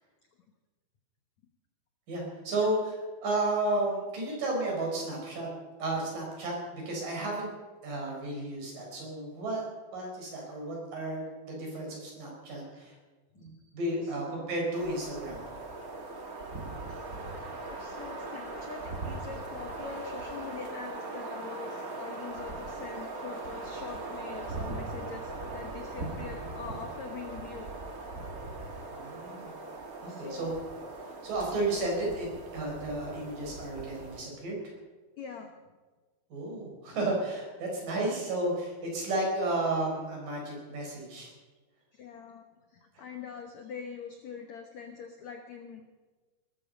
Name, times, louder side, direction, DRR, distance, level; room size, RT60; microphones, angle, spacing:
voice 1, 2.1-5.5 5.8-7.5 7.8-9.6 9.9-13.0 13.4-15.4 28.9-29.6 30.0-30.5 31.0-32.3 32.5-34.6 36.3-41.3, right 2 dB, 50° right, -1 dB, 6.3 m, -33 dB
voice 2, 14.0-14.5 16.9-17.0 17.7-27.7 30.1-30.5 35.2-35.5 41.9-45.8, left 6 dB, 70° left, 5 dB, 1.7 m, -44 dB
sound 1, 14.7-34.2, right 2 dB, 80° right, 0.7 m, -40 dB
20.0 x 13.0 x 5.3 m, 1.3 s
omnidirectional pair, 4.9 m